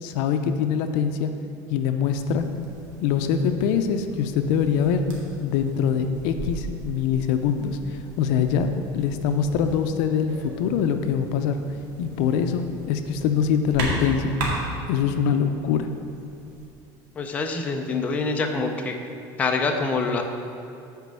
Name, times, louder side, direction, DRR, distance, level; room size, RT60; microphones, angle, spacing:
voice 1, 0.0-1.3 1.7-2.5 3.0-5.1 5.4-11.6 12.0-14.6 14.9-15.9, left 7 dB, 65° left, 7 dB, 0.6 m, -24 dB
sound 1, 2.0-16.7, right 2 dB, 80° right, 2.0 m, -37 dB
voice 2, 17.2-19.0 19.4-20.2, left 3 dB, 15° left, 3 dB, 0.5 m, -25 dB
8.1 x 5.1 x 6.8 m, 2.7 s
cardioid pair, 165°, 10 cm